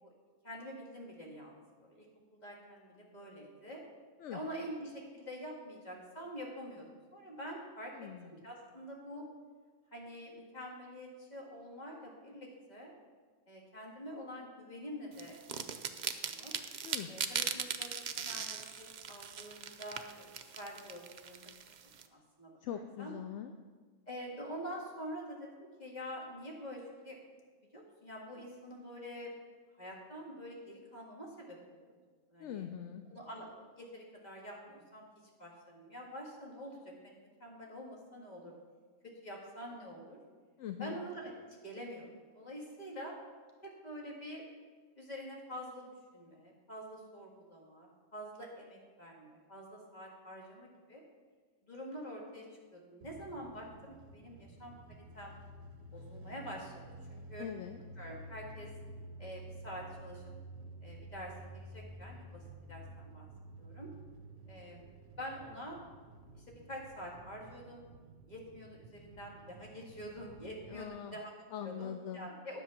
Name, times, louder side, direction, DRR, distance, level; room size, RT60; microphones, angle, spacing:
voice 1, 0.4-2.1 2.3-3.8 4.3-9.3 9.9-12.9 13.5-15.7 16.2-16.5 17.1-21.5 22.1-23.2 24.1-27.2 27.7-29.3 29.8-31.9 32.3-32.7 33.1-35.0 35.4-38.5 39.0-40.2 40.8-41.3 41.6-42.1 42.3-43.2 43.6-44.4 45.0-45.9 46.1-51.0 51.6-55.3 55.9-56.7 57.1-57.5 58.0-58.7 59.2-60.2 60.8-62.4 62.7-63.3 63.6-63.9 64.5-65.8 66.3-67.8 68.3-71.3 71.6-72.6, equal, 30° left, -2 dB, 2.0 m, -46 dB
voice 2, 7.9-8.3 16.8-17.1 22.6-23.5 32.4-33.0 40.6-41.0 57.4-57.8 70.7-71.2 71.5-72.3, left 9 dB, 65° left, 7 dB, 0.8 m, -42 dB
sound 1, 15.2-22.0, right 7 dB, 85° right, 0.4 m, -39 dB
sound 2, 53.0-70.9, right 1 dB, 55° right, 1.1 m, -51 dB
10.5 x 7.3 x 5.9 m, 1.5 s
omnidirectional pair, 1.5 m